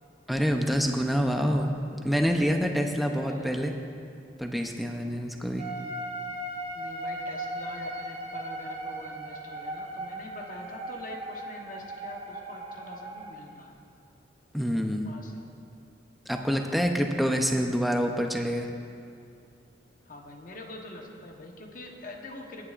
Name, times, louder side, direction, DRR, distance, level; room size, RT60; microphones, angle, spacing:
voice 1, 0.3-1.7 2.0-3.7 4.4-5.6 14.5-15.1 16.3-18.7, equal, ahead, 3 dB, 0.6 m, -26 dB
voice 2, 3.0-3.6 4.7-5.3 6.7-13.8 15.0-15.4 20.1-22.7, left 1 dB, 50° left, 1 dB, 1.1 m, -45 dB
sound 1, 5.6-13.3, right 1 dB, 30° right, 1.4 m, -37 dB
19.5 x 9.8 x 2.5 m, 2.6 s
head